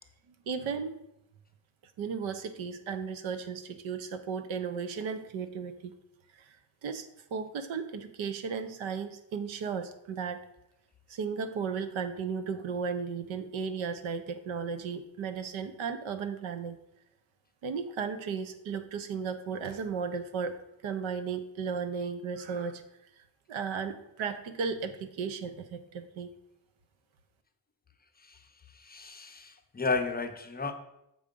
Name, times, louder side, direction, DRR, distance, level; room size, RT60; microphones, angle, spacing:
voice 1, 0.5-1.0 2.0-5.9 6.3-6.6 6.8-7.1 7.3-10.4 11.1-16.8 17.6-20.6 20.8-22.8 23.2-26.3, right 6 dB, 90° right, 10 dB, 0.9 m, -35 dB
voice 2, 28.7-30.7, left 4 dB, 20° left, 5 dB, 0.5 m, -33 dB
7.2 x 5.0 x 5.2 m, 0.84 s
cardioid pair, 155°, 46 cm